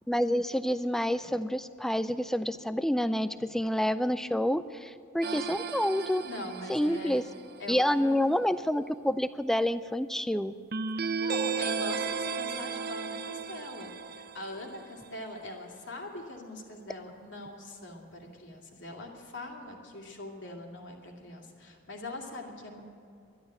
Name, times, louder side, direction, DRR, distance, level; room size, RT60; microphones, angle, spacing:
voice 1, 0.1-6.2 6.7-7.2 7.7-10.5, equal, ahead, 13 dB, 0.3 m, -28 dB
sound 1, 5.2-7.6 10.7-15.2, right 5 dB, 50° right, 0.5 m, -35 dB
voice 2, 6.2-7.2 7.6-8.3 11.2-22.8, left 1 dB, 65° left, 0 dB, 2.3 m, -42 dB
12.0 x 11.5 x 8.9 m, 2.4 s
head